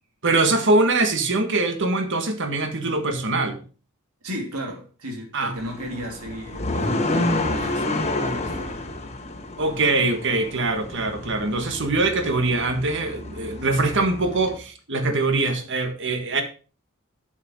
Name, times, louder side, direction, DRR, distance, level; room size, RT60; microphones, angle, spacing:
voice 1, 0.2-3.6 5.3-5.5 9.6-16.4, right 2 dB, 55° right, 1.7 m, -23 dB
voice 2, 4.2-8.8, equal, 85° right, 3.0 m, -35 dB
sound 1, 5.6-14.6, left 2 dB, 30° left, 1.4 m, -29 dB
8.0 x 7.7 x 4.8 m
head